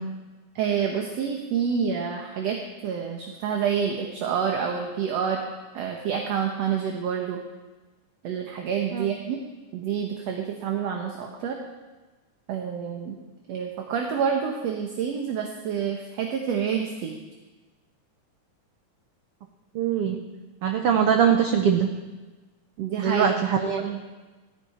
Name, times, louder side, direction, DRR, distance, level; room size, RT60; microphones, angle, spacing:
voice 1, 0.6-5.4 5.7-7.4 8.2-9.4 9.7-11.6 12.5-13.2 13.5-17.1 22.8-23.5 23.8-24.0, right 7 dB, 60° right, 2 dB, 2.0 m, -28 dB
voice 2, 19.7-20.2 20.6-21.9 23.0-24.0, right 7 dB, 80° right, 5 dB, 1.3 m, -22 dB
16.5 x 15.0 x 4.3 m, 1.2 s
omnidirectional pair, 3.7 m